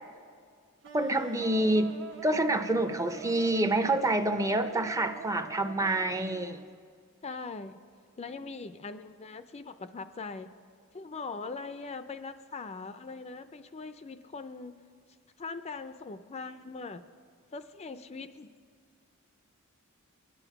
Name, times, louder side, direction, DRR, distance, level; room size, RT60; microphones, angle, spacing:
sound 1, 0.8-6.7, right 7 dB, 60° right, 0.9 m, -45 dB
voice 1, 0.9-6.6, right 1 dB, 15° right, 9 dB, 0.6 m, -27 dB
voice 2, 7.2-7.8 8.2-10.5 10.9-14.8 15.4-17.0 17.5-18.5, left 4 dB, 30° left, 10 dB, 0.4 m, -41 dB
23.5 x 10.0 x 5.8 m, 2.1 s
head